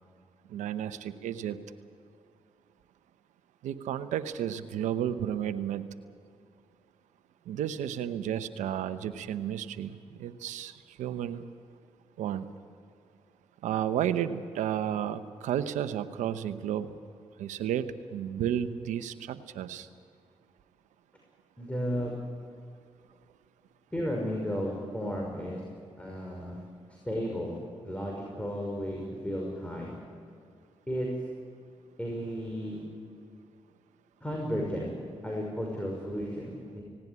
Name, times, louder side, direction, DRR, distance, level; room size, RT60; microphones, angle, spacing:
voice 1, 0.5-1.6 3.6-5.8 7.5-9.9 10.2-10.7 11.0-11.4 12.2-12.4 13.6-16.9 17.4-17.8 18.1-19.9, right 10 dB, 85° right, 12 dB, 0.9 m, -32 dB
voice 2, 21.6-22.3 23.9-25.6 26.0-26.6 27.1-30.0 30.9-31.3 32.0-32.9 34.2-35.0 35.2-36.8, equal, 10° left, -1 dB, 5.8 m, -34 dB
18.5 x 18.0 x 9.7 m, 2.4 s
supercardioid pair, 45°, 12 cm